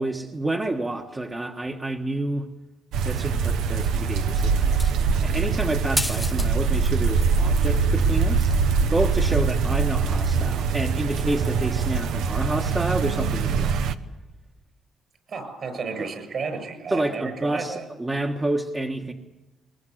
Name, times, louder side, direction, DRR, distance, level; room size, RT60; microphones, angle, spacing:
voice 1, 0.0-2.5 3.0-4.8 5.2-8.5 8.8-13.8 16.0-16.1 16.9-19.1, right 2 dB, 20° right, 2 dB, 1.5 m, -29 dB
sound 1, 2.9-13.9, right 5 dB, 85° right, 1.0 m, -23 dB
sound 2, 4.7-5.1 6.0-6.5 6.8-7.5 8.5-8.6, left 2 dB, 15° left, 0.7 m, -30 dB
voice 2, 15.3-17.9, right 4 dB, 55° right, 8 dB, 6.8 m, -32 dB
21.5 x 21.0 x 7.9 m, 1.1 s
cardioid pair, 90°, 0 cm